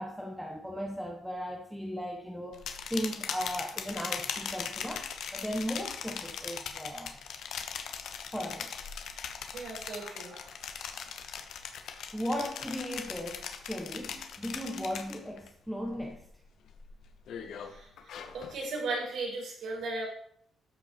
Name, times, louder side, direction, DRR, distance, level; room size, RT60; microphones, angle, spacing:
voice 1, 0.0-7.1 8.3-8.7 12.1-16.3, equal, ahead, 0 dB, 1.0 m, -37 dB
sound 1, 2.5-15.5 15.8-16.3 16.7-18.6, left 7 dB, 70° left, 1.1 m, -40 dB
voice 2, 9.5-10.5 17.6-17.9 18.3-20.0, right 3 dB, 70° right, -4 dB, 4.8 m, -36 dB
12.5 x 5.5 x 4.3 m, 0.65 s
cardioid pair, 160°, 0 cm